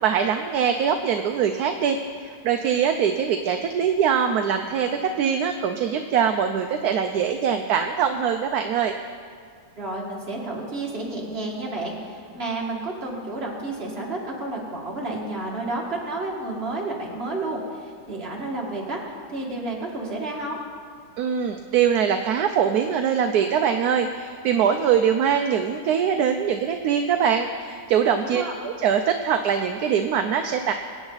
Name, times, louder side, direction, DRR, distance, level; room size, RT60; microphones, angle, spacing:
voice 1, 0.0-2.0 2.2-8.9 21.2-30.7, right 7 dB, 70° right, 6 dB, 1.1 m, -23 dB
voice 2, 9.8-19.0 19.3-20.6 28.2-28.5, right 2 dB, 35° right, -3 dB, 2.5 m, -31 dB
23.5 x 8.9 x 4.0 m, 2.1 s
omnidirectional pair, 1.8 m